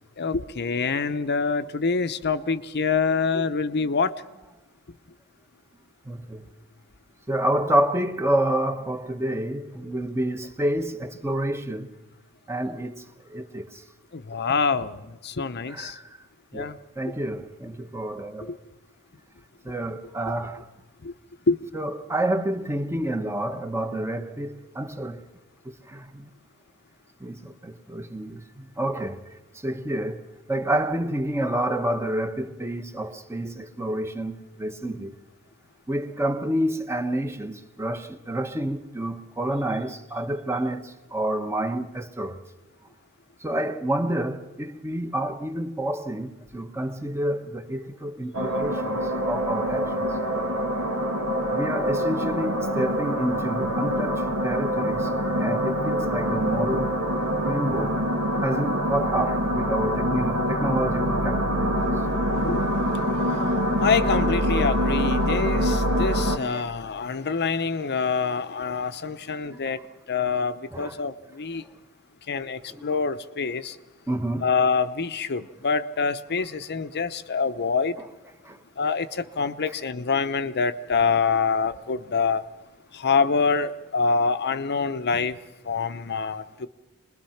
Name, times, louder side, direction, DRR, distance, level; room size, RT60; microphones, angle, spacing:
voice 1, 0.2-4.1 14.1-15.9 16.5-16.8 18.5-18.6 21.0-21.1 21.5-21.6 23.0-23.1 57.8-57.9 62.4-62.6 63.8-69.8 70.1-71.6 72.3-73.7 74.4-78.0 78.8-82.4 82.9-85.4 85.7-86.7, left 5 dB, 50° left, 0.8 m, -26 dB
voice 2, 6.1-6.5 7.3-11.9 12.5-13.0 13.3-13.8 15.7-16.0 16.5-18.6 19.6-20.6 21.7-25.2 25.9-26.2 27.2-29.2 29.6-30.2 30.5-35.1 35.9-42.4 43.4-49.9 51.5-55.1 55.4-57.0 57.4-58.0 58.4-61.7 66.2-66.6 69.5-69.8 70.7-71.0 72.7-73.0 74.1-74.5 78.5-78.6, right 1 dB, 10° right, 1.1 m, -28 dB
sound 1, 48.3-66.4, equal, 75° right, 2.2 m, -25 dB
27.0 x 21.0 x 5.8 m
head